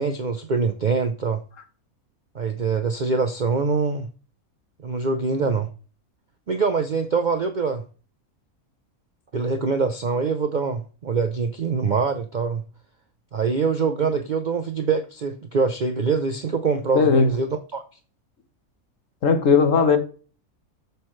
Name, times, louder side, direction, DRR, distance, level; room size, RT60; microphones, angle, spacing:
voice 1, 0.0-1.4 2.3-4.1 4.8-5.7 6.5-7.8 9.3-12.6 13.3-17.8, right 4 dB, 55° right, 0.5 m, -24 dB
voice 2, 16.9-17.3 19.2-20.0, left 5 dB, 60° left, 1.4 m, -17 dB
7.4 x 6.9 x 3.2 m
omnidirectional pair, 1.6 m